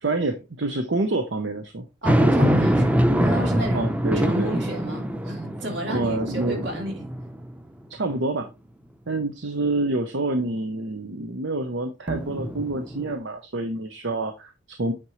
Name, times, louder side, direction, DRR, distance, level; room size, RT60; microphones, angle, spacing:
voice 1, 0.0-1.8 3.7-4.5 5.9-6.7 7.9-8.5 9.1-14.9, right 2 dB, 90° right, 0.9 m, -27 dB
sound 1, 2.0-7.6 8.1-8.2 12.1-13.1, equal, 10° right, 0.6 m, -23 dB
voice 2, 2.0-7.0, equal, 70° right, 2.9 m, -32 dB
8.7 x 5.3 x 3.1 m
head